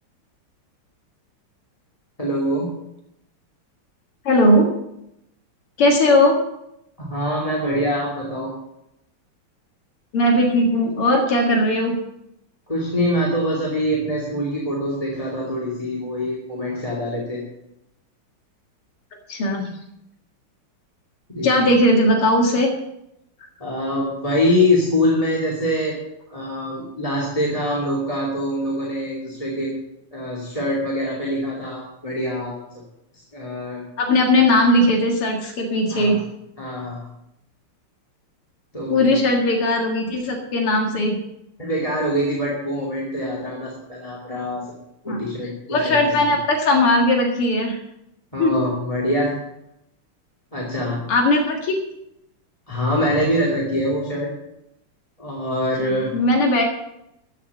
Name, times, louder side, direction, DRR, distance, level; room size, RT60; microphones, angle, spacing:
voice 1, 2.2-2.8 7.0-8.5 12.7-17.4 21.3-21.7 23.6-26.0 26.3-29.7 30.1-32.6 33.1-33.8 35.9-36.2 36.6-37.1 38.7-39.2 41.6-44.7 45.0-46.2 48.3-49.4 50.5-51.0 52.7-54.3 55.2-56.1, equal, 15° left, -3 dB, 2.7 m, -24 dB
voice 2, 4.2-4.7 5.8-6.4 10.1-12.0 19.3-19.7 21.4-22.7 34.0-36.2 38.9-41.2 45.1-45.2 45.7-47.8 48.4-48.6 51.1-51.8 56.1-56.6, left 1 dB, 85° left, 2 dB, 2.8 m, -18 dB
14.5 x 6.7 x 7.9 m, 0.82 s
omnidirectional pair, 2.4 m